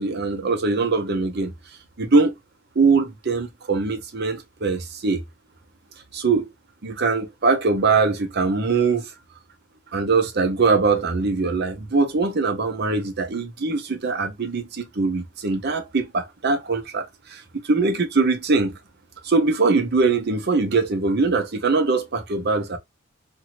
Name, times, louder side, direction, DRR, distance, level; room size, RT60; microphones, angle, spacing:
voice 1, 0.0-1.5 2.0-2.3 2.8-5.2 6.1-6.5 6.8-9.1 9.9-18.7 19.2-22.8, right 4 dB, 55° right, 0.7 m, -22 dB
2.7 x 2.7 x 2.9 m
head